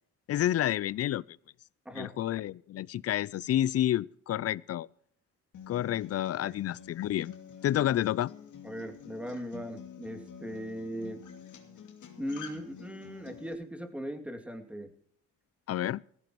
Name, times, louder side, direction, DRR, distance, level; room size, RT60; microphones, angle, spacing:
voice 1, 0.3-1.2 2.0-4.9 5.7-7.3 7.6-8.3 15.7-16.0, left 12 dB, 55° left, 0.5 m, -29 dB
voice 2, 1.8-2.2 6.4-6.6 8.6-11.2 12.2-14.9, equal, 5° right, 2.5 m, -39 dB
Acoustic guitar, 5.5-13.5, left 8 dB, 75° left, 2.6 m, -48 dB
18.0 x 15.0 x 3.0 m
cardioid pair, 90°, 30 cm